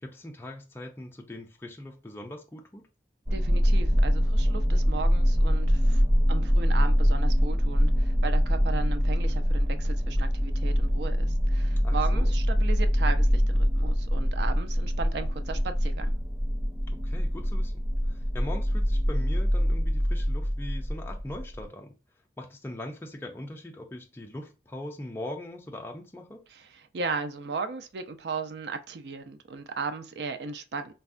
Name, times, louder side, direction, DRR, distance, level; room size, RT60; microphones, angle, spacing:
voice 1, 0.0-2.8 11.8-12.3 17.0-17.7 18.1-21.9 22.4-26.4, left 1 dB, 15° left, 0.4 m, -40 dB
sound 1, 3.3-21.6, equal, 25° right, 0.6 m, -24 dB
voice 2, 3.3-6.0 6.3-16.2 26.5-30.9, right 4 dB, 70° right, 0.4 m, -36 dB
3.3 x 2.1 x 2.4 m
head